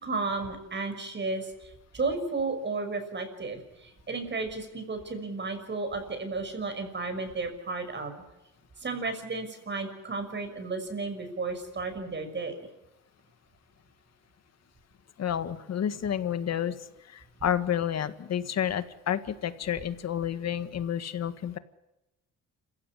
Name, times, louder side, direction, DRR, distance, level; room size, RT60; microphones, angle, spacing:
voice 1, 0.0-8.1 8.8-12.7, right 3 dB, 35° right, 7 dB, 6.2 m, -33 dB
voice 2, 15.2-16.8 17.1-21.6, left 9 dB, 60° left, 12 dB, 1.7 m, -30 dB
28.0 x 16.0 x 9.8 m, 0.96 s
cardioid pair, 90°, 30 cm